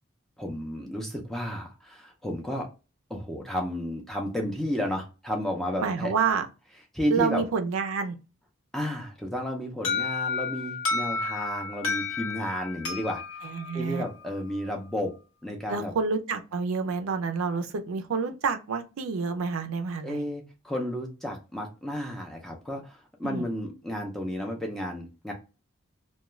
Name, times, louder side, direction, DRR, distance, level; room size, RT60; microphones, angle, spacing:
voice 1, 0.4-2.7 3.1-6.1 6.9-7.5 8.7-13.2 13.7-15.1 15.4-15.9 20.0-25.3, equal, ahead, 0.4 m, -32 dB
voice 2, 5.8-6.5 7.1-8.2 13.4-14.0 15.7-20.2 23.2-23.4, right 5 dB, 75° right, 0.4 m, -28 dB
Alarm, 9.8-14.6, left 4 dB, 80° left, 1.0 m, -32 dB
2.4 x 2.2 x 3.0 m
head